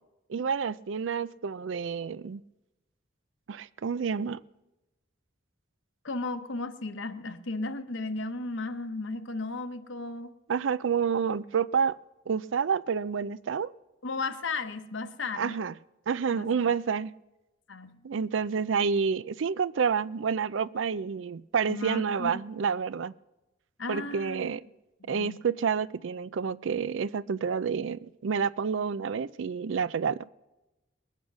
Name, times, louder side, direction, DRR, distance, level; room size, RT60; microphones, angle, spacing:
voice 1, 0.3-2.4 3.5-4.4 10.5-12.0 12.3-13.7 15.4-15.7 16.1-17.1 18.0-23.1 23.9-24.6 25.1-30.3, right 6 dB, 70° right, 0.4 m, -29 dB
voice 2, 6.0-10.3 14.0-15.6 16.3-16.7 17.7-18.0 21.7-22.4 23.8-24.5 25.0-25.4, left 3 dB, 65° left, 1.0 m, -35 dB
20.5 x 8.4 x 6.1 m
head